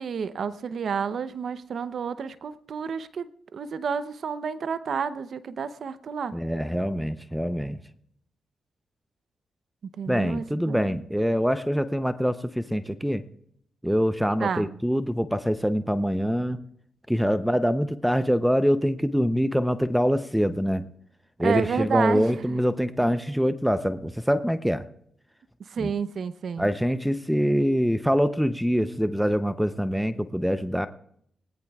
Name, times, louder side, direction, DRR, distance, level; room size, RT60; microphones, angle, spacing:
voice 1, 0.0-6.4 10.0-11.0 14.4-14.8 21.4-22.6 25.6-26.7, right 6 dB, 65° right, 13 dB, 0.7 m, -30 dB
voice 2, 6.3-7.8 10.1-13.2 13.8-16.6 17.1-20.9 21.4-24.9 25.8-25.9 26.6-30.9, equal, ahead, 12 dB, 0.7 m, -24 dB
20.5 x 18.0 x 2.4 m, 0.70 s
supercardioid pair, 55°, 0 cm